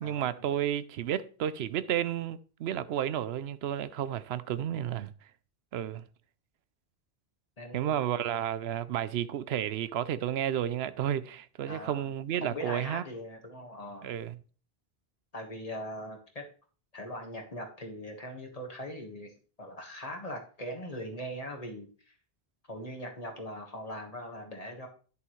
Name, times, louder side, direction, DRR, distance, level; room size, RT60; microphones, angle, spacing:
voice 1, 0.0-5.1 5.7-6.0 7.7-13.0 14.0-14.4, right 10 dB, 85° right, 0.8 m, -32 dB
voice 2, 7.6-8.0 11.7-12.1 12.4-14.1 15.3-16.4 16.9-22.1 22.7-24.9, equal, 35° left, 1.6 m, -40 dB
10.5 x 7.0 x 3.1 m
omnidirectional pair, 1.0 m